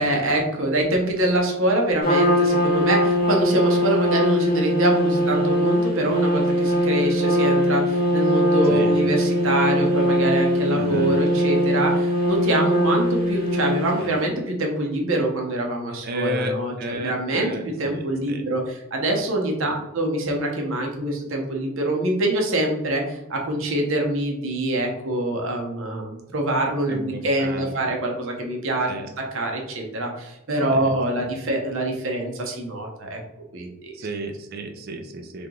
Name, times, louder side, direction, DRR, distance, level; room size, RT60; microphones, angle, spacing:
voice 1, 0.0-28.9 29.2-33.2 33.5-34.0, right 1 dB, 60° right, 1 dB, 0.8 m, -25 dB
Trumpet, 2.0-14.2, equal, 45° left, 1.1 m, -21 dB
voice 2, 10.7-11.1 14.0-14.2 16.0-18.4 19.6-19.8 26.9-27.9 28.9-29.1 30.7-30.9 31.2-31.3 33.9-35.5, right 1 dB, 45° right, 4 dB, 0.4 m, -33 dB
3.3 x 2.9 x 3.7 m, 0.92 s
head